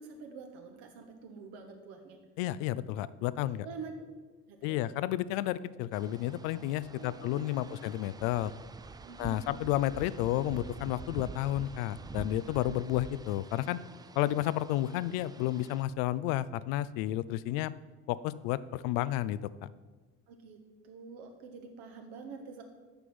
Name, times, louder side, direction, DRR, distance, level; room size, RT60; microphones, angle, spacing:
voice 1, 0.0-2.2 3.6-3.9 4.5-4.8 6.9-7.8 9.0-9.6 20.3-20.6 20.8-22.6, right 5 dB, 65° right, 4 dB, 1.5 m, -47 dB
voice 2, 2.4-3.7 4.6-8.5 9.2-13.8 14.2-17.7 18.1-19.5, left 14 dB, 60° left, 17 dB, 0.5 m, -31 dB
sound 1, 5.9-15.8, right 4 dB, 10° right, 0.3 m, -47 dB
6.8 x 6.0 x 7.1 m, 1.3 s
figure-of-eight pair, 50°, 40 cm